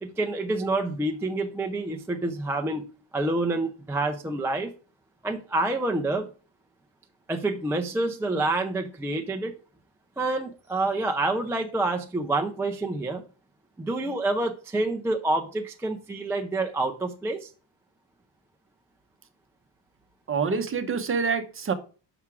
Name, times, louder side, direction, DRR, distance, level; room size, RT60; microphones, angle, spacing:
voice 1, 0.0-2.8 3.1-4.7 5.2-6.3 7.3-9.5 10.2-13.2 13.8-17.5, right 2 dB, 5° right, 3 dB, 0.4 m, -27 dB
voice 2, 20.3-21.7, right 5 dB, 30° right, 9 dB, 0.8 m, -26 dB
7.2 x 5.9 x 4.7 m, 0.37 s
cardioid pair, 155°, 44 cm